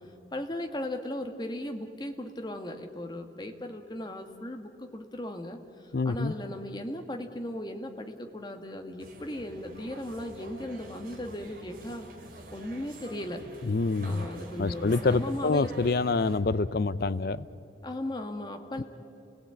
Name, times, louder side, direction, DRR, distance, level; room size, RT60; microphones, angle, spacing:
voice 1, 0.3-12.1 12.5-13.4 14.0-15.7 17.8-18.8, left 1 dB, 25° left, 5 dB, 1.4 m, -37 dB
voice 2, 5.9-6.3 13.6-14.2 14.6-17.5 18.8-18.9, left 3 dB, 55° left, 16 dB, 0.6 m, -26 dB
sound 1, 9.0-16.4, right 1 dB, 50° right, 2.8 m, -46 dB
30.0 x 18.0 x 8.6 m, 2.9 s
head